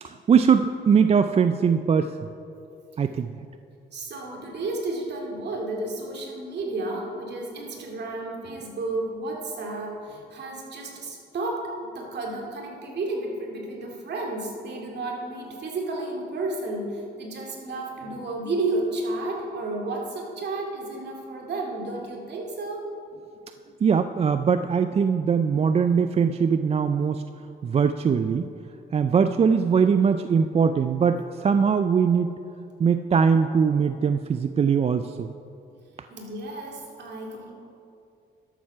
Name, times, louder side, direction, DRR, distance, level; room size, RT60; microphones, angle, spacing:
voice 1, 0.0-2.2 3.0-3.3 23.8-27.2 27.6-28.4 28.9-32.3 32.8-35.3, right 6 dB, 30° right, 10 dB, 0.4 m, -21 dB
voice 2, 3.9-22.8 36.1-37.5, right 2 dB, 60° right, -1 dB, 2.4 m, -32 dB
12.0 x 7.4 x 5.5 m, 2.6 s
cardioid pair, 90°, 20 cm